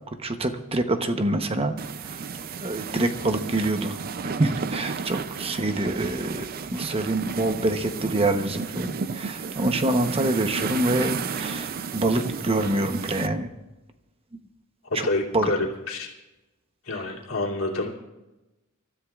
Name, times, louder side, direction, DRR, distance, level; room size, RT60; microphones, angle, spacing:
voice 1, 0.2-1.7 2.0-2.2 2.6-4.0 4.4-6.5 6.7-13.5 14.9-15.1 15.3-15.5, right 2 dB, 25° right, 7 dB, 0.9 m, -26 dB
sound 1, 1.8-13.3, right 5 dB, 45° right, 0.5 m, -33 dB
voice 2, 14.8-16.1 16.8-17.9, left 2 dB, 80° left, -3 dB, 2.7 m, -27 dB
27.5 x 13.5 x 2.4 m, 1.0 s
head